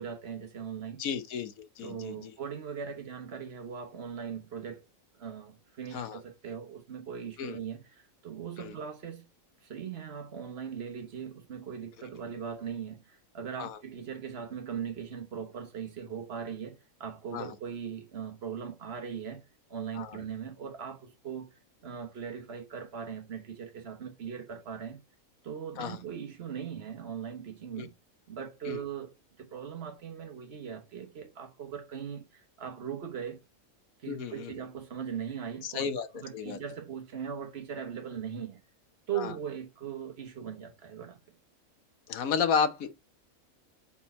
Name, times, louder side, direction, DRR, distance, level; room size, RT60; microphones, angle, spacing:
voice 1, 0.0-1.0 1.8-4.8 5.2-9.3 9.6-19.4 19.7-25.0 25.4-27.9 28.3-29.1 29.4-33.4 34.0-35.9 36.2-38.6 39.1-41.4, right 7 dB, 50° right, 1.3 m, -39 dB
voice 2, 1.0-2.3 5.9-6.2 7.4-7.6 8.6-8.7 13.6-13.8 17.3-17.5 20.0-20.2 25.8-26.0 27.8-27.9 28.6-28.8 34.0-34.5 35.6-36.1 36.3-36.6 39.1-39.3 42.1-42.9, left 6 dB, 80° left, 1.3 m, -32 dB
4.3 x 4.2 x 5.4 m
omnidirectional pair, 1.4 m